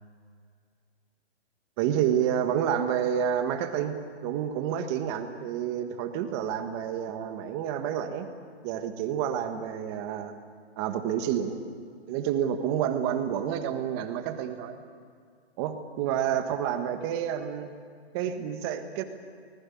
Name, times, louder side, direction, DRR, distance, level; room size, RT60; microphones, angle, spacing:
voice 1, 1.8-8.3 8.6-10.3 10.8-11.6 12.1-14.8 15.6-17.7 18.1-19.0, right 9 dB, 25° right, 7 dB, 1.5 m, -29 dB
23.5 x 19.5 x 8.6 m, 2.2 s
hypercardioid pair, 155°, 33 cm